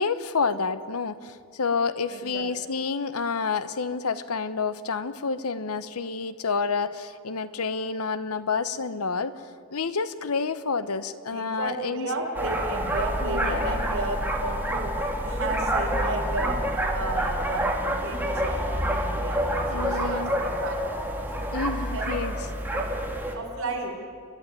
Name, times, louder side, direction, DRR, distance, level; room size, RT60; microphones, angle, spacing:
voice 1, 0.0-9.4 9.7-12.1 12.4-12.5 13.2-13.8 19.7-20.3 21.5-22.4, left 4 dB, 75° left, 13 dB, 1.0 m, -29 dB
voice 2, 2.1-2.5 11.3-14.9 15.2-16.6 16.9-21.1 21.9-22.9 23.3-23.9, right 2 dB, 65° right, 0 dB, 4.5 m, -33 dB
sound 1, 12.3-23.3, right 1 dB, 10° right, 2.4 m, -28 dB
29.5 x 12.0 x 9.6 m, 2.2 s
head